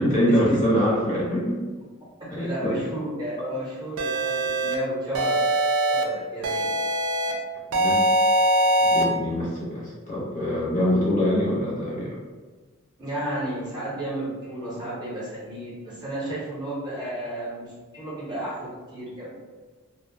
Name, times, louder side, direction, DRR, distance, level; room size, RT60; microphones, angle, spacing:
voice 1, 0.0-1.6 2.3-2.8 7.7-8.0 8.9-12.1, equal, 35° left, -6 dB, 0.7 m, -24 dB
voice 2, 2.4-6.7 13.0-19.3, right 1 dB, 20° right, -8 dB, 0.7 m, -33 dB
sound 1, 4.0-4.7 5.1-6.0 6.4-7.3 7.7-9.0, right 1 dB, 65° right, 0.4 m, -22 dB
2.6 x 2.1 x 2.6 m, 1.4 s
head